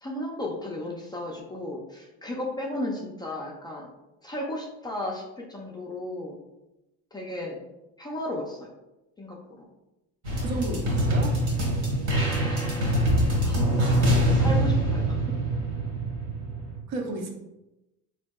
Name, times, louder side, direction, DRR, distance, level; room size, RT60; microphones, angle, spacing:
voice 1, 0.0-3.9 4.2-6.4 7.1-7.6 8.0-8.7 9.2-9.7 12.3-13.1 13.4-15.4, left 1 dB, 15° left, -3 dB, 0.3 m, -35 dB
sound 1, 10.2-16.8, right 1 dB, 55° right, 1.1 m, -24 dB
voice 2, 10.4-11.4 13.4-13.6 16.9-17.3, right 2 dB, 75° right, 2 dB, 0.8 m, -32 dB
4.2 x 2.7 x 2.2 m, 0.96 s
cardioid pair, 150°, 33 cm